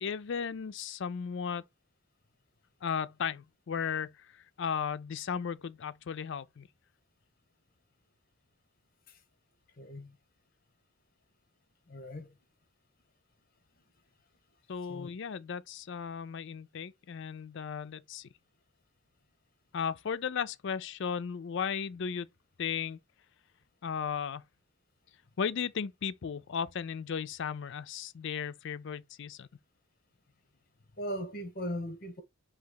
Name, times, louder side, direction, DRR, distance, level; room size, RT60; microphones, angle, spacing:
voice 1, 0.0-1.6 2.8-6.7 14.7-18.3 19.7-22.3 22.6-23.0 23.8-24.4 25.4-29.5, left 7 dB, 65° left, 0.4 m, -35 dB
voice 2, 9.8-10.2 11.9-12.3 14.9-15.1 31.0-32.2, equal, 50° left, 1.0 m, -38 dB
4.0 x 2.9 x 3.9 m
head